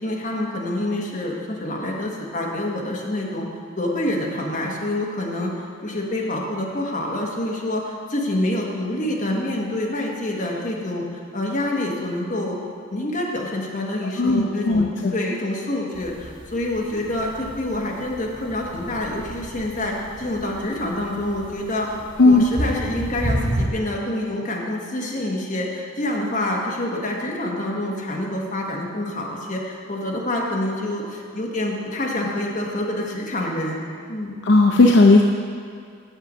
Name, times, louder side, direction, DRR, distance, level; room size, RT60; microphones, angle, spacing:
voice 1, 0.0-3.5 3.8-5.5 5.8-12.6 12.9-14.8 15.1-21.9 22.2-33.8 34.1-34.4, left 1 dB, 40° left, -2 dB, 1.3 m, -27 dB
voice 2, 14.2-15.1 22.2-22.5 34.4-35.2, left 2 dB, 65° left, 1 dB, 0.5 m, -15 dB
sound 1, 15.9-23.7, right 1 dB, 25° right, 0.6 m, -31 dB
7.9 x 6.7 x 6.2 m, 2.3 s
head